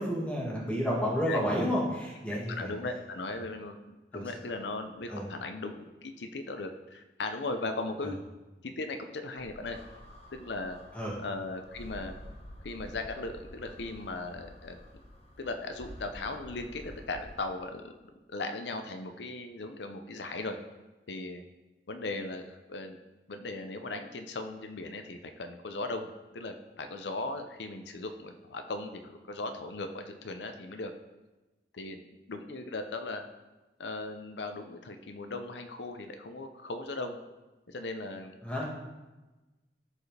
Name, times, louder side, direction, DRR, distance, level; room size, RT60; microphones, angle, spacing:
voice 1, 0.0-2.7 4.1-4.2 5.1-5.3 8.0-8.1 10.9-11.1 38.4-38.7, equal, 10° left, -5 dB, 1.9 m, -30 dB
voice 2, 2.3-3.8 4.1-8.2 8.6-9.8 10.3-10.8 11.2-12.2 12.6-14.8 15.4-17.9 18.3-20.6 21.1-21.4 21.9-23.0 23.3-30.9 31.7-32.0 32.3-33.2 33.8-37.2 37.7-38.3, left 2 dB, 85° left, 6 dB, 0.7 m, -38 dB
sound 1, 9.4-17.4, left 1 dB, 35° left, 1.1 m, -49 dB
14.0 x 4.7 x 3.3 m, 1.1 s
head